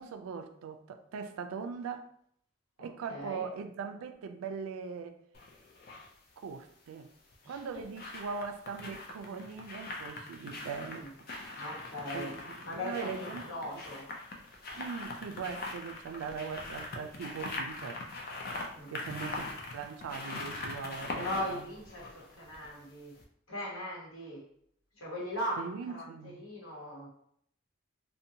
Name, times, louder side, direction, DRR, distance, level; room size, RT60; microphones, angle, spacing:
voice 1, 0.0-2.1 2.8-5.2 6.4-7.1 7.5-11.6 12.1-13.5 14.8-18.0 18.9-21.6 25.6-26.4, right 5 dB, 90° right, 7 dB, 0.3 m, -40 dB
voice 2, 2.8-3.4 7.4-7.6 10.9-11.1 11.6-12.4 12.6-14.1 18.7-19.2 20.6-20.8 21.1-23.1 23.5-24.4 25.0-26.0 26.3-27.1, left 1 dB, 80° left, -5 dB, 1.0 m, -39 dB
sound 1, 5.3-6.1 7.3-22.9 23.2-23.3, left 2 dB, 45° left, 0.4 m, -42 dB
2.6 x 2.1 x 2.7 m, 0.67 s
head